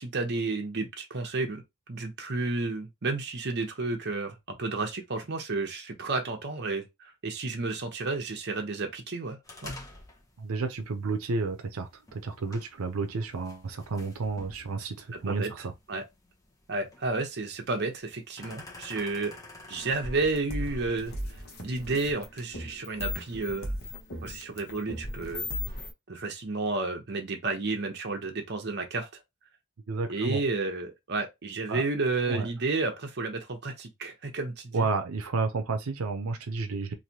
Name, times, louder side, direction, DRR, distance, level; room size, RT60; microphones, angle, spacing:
voice 1, 0.0-1.6 1.9-6.9 7.2-9.7 15.1-15.5 15.9-16.0 16.7-19.4 19.7-21.1 21.6-23.7 24.2-25.5 26.1-29.1 30.1-34.9, right 3 dB, 55° right, 0.8 m, -31 dB
sound 1, 9.4-25.9, left 2 dB, 15° left, 0.8 m, -51 dB
voice 2, 10.4-15.7 29.9-30.4 31.7-31.8 32.3-32.5 34.7-36.9, right 4 dB, 90° right, 0.6 m, -31 dB
sound 2, 19.8-25.9, left 1 dB, 50° left, 1.0 m, -36 dB
3.2 x 2.6 x 2.8 m
head